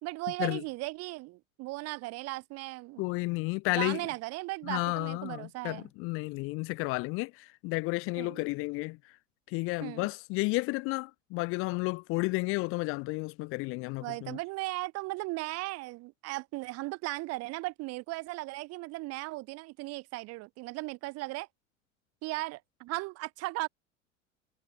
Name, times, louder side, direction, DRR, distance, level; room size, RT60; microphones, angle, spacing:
voice 1, 0.0-3.0 3.7-5.9 8.2-8.4 9.8-10.1 14.0-21.5 22.2-23.7, right 22 dB, 40° right, 1.1 m, -37 dB
voice 2, 3.0-4.0 4.7-9.1 9.5-14.4, left 25 dB, 35° left, 0.5 m, -32 dB
figure-of-eight pair, 75°, 39 cm